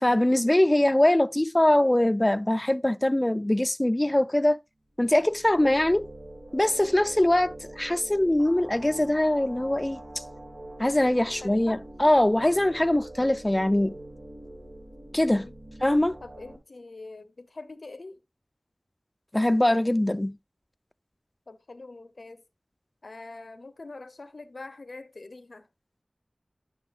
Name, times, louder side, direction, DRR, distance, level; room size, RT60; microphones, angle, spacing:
voice 1, 0.0-4.6 5.0-6.0 6.5-10.2 10.8-14.0 15.1-15.5 15.8-16.2 19.3-20.4, left 1 dB, 25° left, 0.4 m, -22 dB
sound 1, 5.1-16.6, right 1 dB, 90° right, 1.8 m, -44 dB
voice 2, 11.0-11.8 15.3-15.5 16.2-18.2 21.5-22.4 23.0-25.7, left 3 dB, 85° left, 0.6 m, -44 dB
10.5 x 6.2 x 2.4 m
wide cardioid pair, 50°, 0 cm